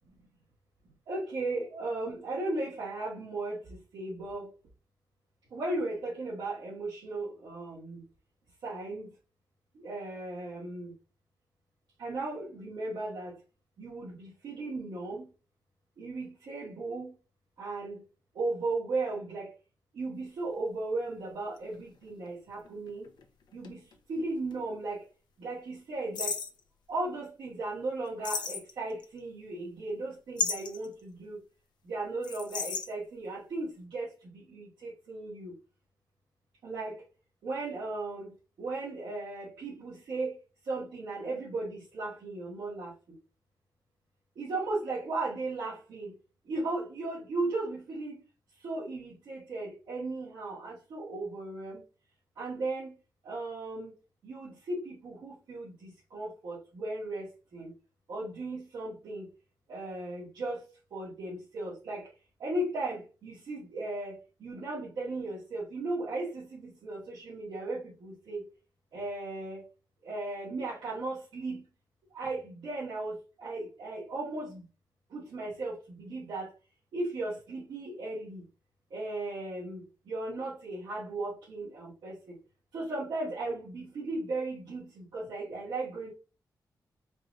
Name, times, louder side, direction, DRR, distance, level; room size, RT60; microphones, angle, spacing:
voice 1, 1.1-4.5 5.5-8.0 8.6-9.1 9.8-10.9 12.0-13.4 13.8-15.3 16.0-17.1 17.6-18.0 18.4-19.5 19.9-23.1 23.5-23.8 24.1-25.0 25.4-26.4 26.9-31.4 31.8-35.6 36.6-37.0 37.4-40.3 40.7-42.9 44.4-46.1 46.5-48.2 48.6-51.8 52.4-52.9 53.2-53.9 54.2-57.7 58.1-59.3 59.7-60.6 60.9-62.1 62.4-68.5 68.9-69.6 70.0-71.6 72.1-74.6 75.1-76.5 76.9-78.5 78.9-82.4 82.7-86.1, right 2 dB, 85° right, 1.8 m, -36 dB
sound 1, 20.5-20.6 21.6-24.2 24.5-24.6 26.1-26.6 28.2-29.0 30.4-30.9 32.2-32.9, left 5 dB, 85° left, 0.7 m, -34 dB
4.5 x 2.6 x 3.1 m
cardioid pair, 55°, 7 cm